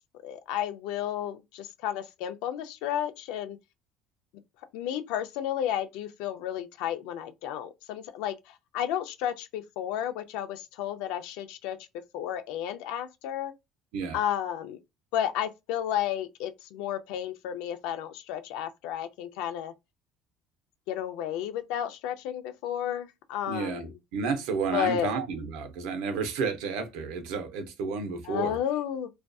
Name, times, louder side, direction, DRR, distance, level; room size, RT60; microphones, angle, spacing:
voice 1, 0.2-3.6 4.7-8.3 8.7-11.8 12.1-13.5 14.1-14.8 15.1-19.7 20.9-23.9 24.7-25.1 28.3-29.1, left 10 dB, 70° left, 0.3 m, -32 dB
voice 2, 23.5-28.6, right 5 dB, 75° right, 0.6 m, -31 dB
2.5 x 2.3 x 2.2 m
cardioid pair, 175°, 0 cm